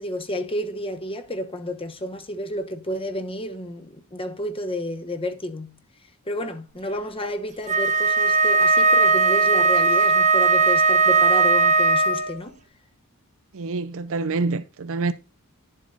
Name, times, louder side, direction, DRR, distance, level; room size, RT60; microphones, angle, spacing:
voice 1, 0.0-5.8 6.3-12.6, left 1 dB, 25° left, 1.1 m, -31 dB
Wind instrument woodwind instrument, 7.7-12.4, right 4 dB, 35° right, 1.2 m, -18 dB
voice 2, 13.5-15.1, right 3 dB, 65° right, 0.6 m, -26 dB
10.5 x 7.6 x 4.0 m
head